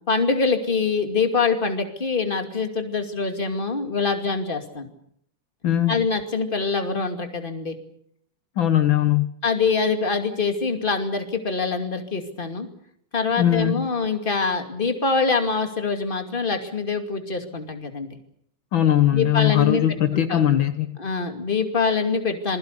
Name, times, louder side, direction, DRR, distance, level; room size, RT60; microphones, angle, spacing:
voice 1, 0.1-4.9 5.9-7.8 9.4-12.7 13.1-18.2 19.1-20.5 21.0-22.6, left 4 dB, 25° left, 5 dB, 2.6 m, -24 dB
voice 2, 5.6-6.0 8.6-9.3 13.4-13.9 18.7-21.0, left 11 dB, 70° left, 9 dB, 1.9 m, -20 dB
27.0 x 21.0 x 6.8 m, 0.67 s
omnidirectional pair, 2.3 m